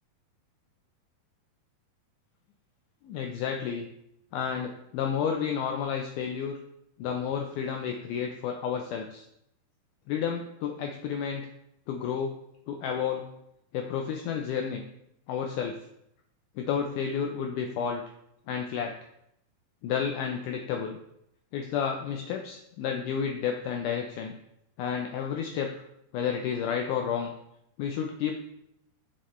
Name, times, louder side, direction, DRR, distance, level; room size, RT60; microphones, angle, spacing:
voice 1, 3.0-3.8 4.3-6.5 7.0-9.2 10.1-11.5 11.9-12.3 12.7-13.3 13.7-14.8 15.3-15.7 16.6-18.0 18.5-18.9 19.8-21.0 21.5-24.3 24.8-25.7 26.1-27.3 27.8-28.4, left 7 dB, 80° left, 3 dB, 1.9 m, -31 dB
7.4 x 6.5 x 3.1 m, 0.79 s
omnidirectional pair, 4.1 m